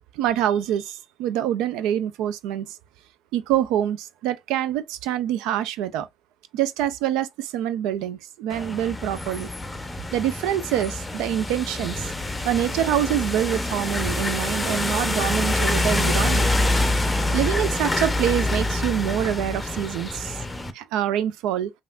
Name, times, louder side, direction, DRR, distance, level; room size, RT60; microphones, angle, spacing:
voice 1, 0.1-2.8 3.3-6.1 6.5-9.5 10.1-12.1 12.4-16.5 17.3-20.4 20.7-21.7, right 11 dB, 80° right, 0.3 m, -25 dB
sound 1, 8.5-20.7, left 2 dB, 15° left, 0.6 m, -26 dB
3.4 x 2.4 x 2.3 m
hypercardioid pair, 65°, 0 cm